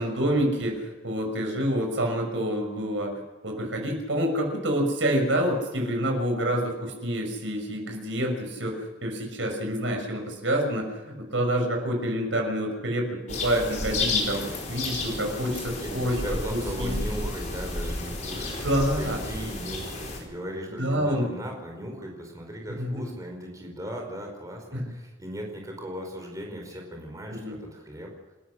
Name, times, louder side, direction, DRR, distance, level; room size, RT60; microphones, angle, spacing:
voice 1, 0.0-16.2 16.5-16.9 18.6-19.2 20.8-21.3 22.8-23.0 24.7-24.9 27.3-27.6, equal, 80° right, 3 dB, 6.1 m, -27 dB
sound 1, 13.3-20.2, left 2 dB, 40° left, 4.8 m, -31 dB
voice 2, 15.8-18.5 19.0-28.1, equal, 15° right, 1 dB, 4.9 m, -37 dB
28.5 x 14.0 x 6.5 m, 1.1 s
head